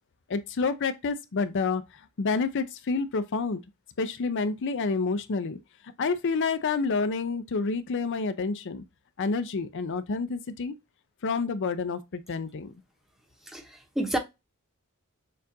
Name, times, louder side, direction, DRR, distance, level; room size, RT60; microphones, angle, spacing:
voice 1, 0.3-1.8 2.2-3.6 4.0-5.6 6.0-8.8 9.2-10.7 11.2-12.7, left 4 dB, 55° left, 0.5 m, -28 dB
voice 2, 13.5-14.2, right 1 dB, ahead, 0.9 m, -30 dB
6.6 x 2.5 x 2.7 m
head